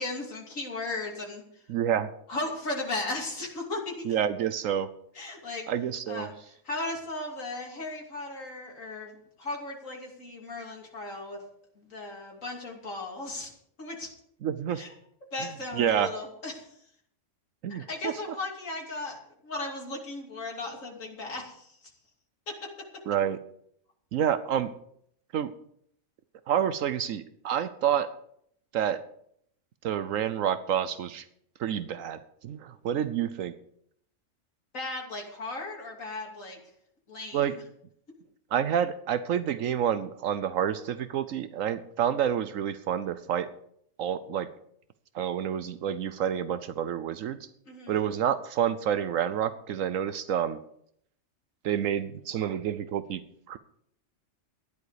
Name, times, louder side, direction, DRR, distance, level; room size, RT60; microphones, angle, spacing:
voice 1, 0.0-1.4 2.3-4.1 5.1-5.7 6.1-6.3 6.6-9.1 9.4-11.4 11.8-13.5 13.8-14.1 14.7-14.9 15.3-16.7 17.7-19.2 19.4-21.8 22.5-22.6 34.7-36.6 37.1-37.5 47.7-48.0, left 2 dB, 70° left, -1 dB, 3.2 m, -36 dB
voice 2, 1.7-2.1 4.0-4.9 5.7-6.3 14.4-14.8 15.4-15.5 15.7-16.1 17.6-18.1 23.1-23.4 24.1-24.7 25.3-25.5 26.5-28.1 28.7-29.0 29.8-31.3 31.6-33.6 37.3-37.6 38.5-43.5 44.0-44.5 45.1-47.5 47.9-50.6 51.6-53.2 53.5-53.6, right 9 dB, 75° right, 13 dB, 1.1 m, -28 dB
14.0 x 11.0 x 4.9 m, 0.69 s
omnidirectional pair, 1.4 m